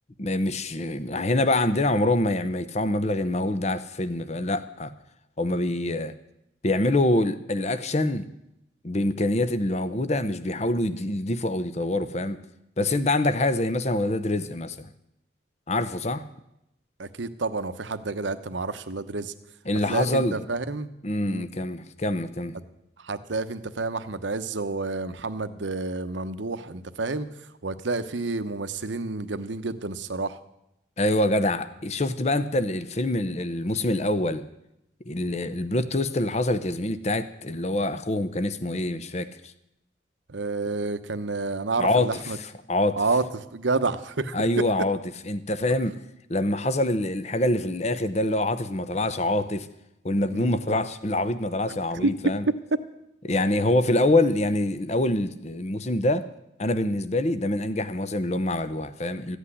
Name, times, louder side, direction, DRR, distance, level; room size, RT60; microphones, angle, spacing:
voice 1, 0.2-4.9 5.4-6.1 6.6-8.3 8.8-12.4 12.8-14.9 15.7-16.2 19.7-20.4 21.0-22.6 31.0-34.4 35.1-39.5 41.8-43.0 44.3-45.0 45.2-46.0 46.3-49.7 50.0-52.4 53.2-56.3 56.6-59.4, left 1 dB, 35° left, 0.8 m, -25 dB
voice 2, 17.0-19.3 19.9-20.9 21.2-21.5 23.0-27.3 27.6-30.4 40.3-42.4 43.0-43.2 43.5-44.4 50.3-50.5 51.9-52.1, right 3 dB, 75° right, 0.9 m, -29 dB
14.5 x 8.2 x 9.9 m
head